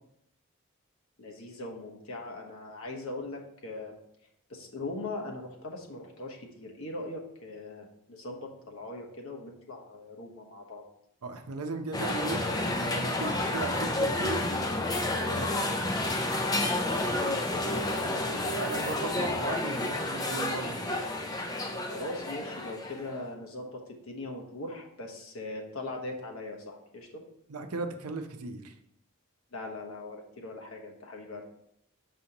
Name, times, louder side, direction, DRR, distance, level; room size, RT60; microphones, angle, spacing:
voice 1, 1.2-4.0 4.5-10.8 16.6-18.6 21.8-27.2 29.5-31.4, left 2 dB, 70° left, 1 dB, 1.1 m, -40 dB
voice 2, 11.2-14.8 15.1-15.7 18.0-21.0 27.5-28.7, right 3 dB, 85° right, 6 dB, 0.7 m, -37 dB
sound 1, 11.9-23.2, left 2 dB, 15° left, 0.4 m, -30 dB
6.6 x 5.5 x 2.9 m, 0.77 s
head